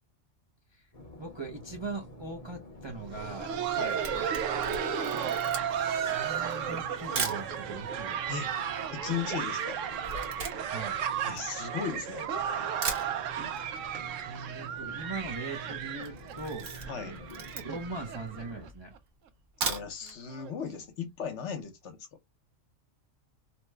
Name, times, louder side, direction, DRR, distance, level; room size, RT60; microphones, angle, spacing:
sound 1, 0.9-18.7, right 1 dB, 35° left, 0.8 m, -48 dB
voice 1, 1.2-3.6 5.8-8.3 10.7-11.0 14.1-16.7 17.0-17.2 17.6-18.9, right 3 dB, 30° right, 0.5 m, -40 dB
Laughter, 3.0-18.7 19.0-19.1 19.6-19.8 20.3-20.5 21.6-21.7, right 8 dB, 85° right, 0.9 m, -34 dB
Camera, 3.9-7.5 8.2-8.3 8.5-12.1 12.5-12.6 12.8-13.7 13.9-14.0 14.3-14.4 14.6-15.0 15.4-15.6 16.0-18.0 18.5-18.6 19.4-20.2 20.5-20.6 21.0-21.1, right 4 dB, 70° right, 1.2 m, -37 dB
voice 2, 8.9-9.8 11.2-12.3 16.9-17.2 19.6-22.0, left 7 dB, 70° left, 1.1 m, -36 dB
2.9 x 2.1 x 3.2 m
omnidirectional pair, 1.3 m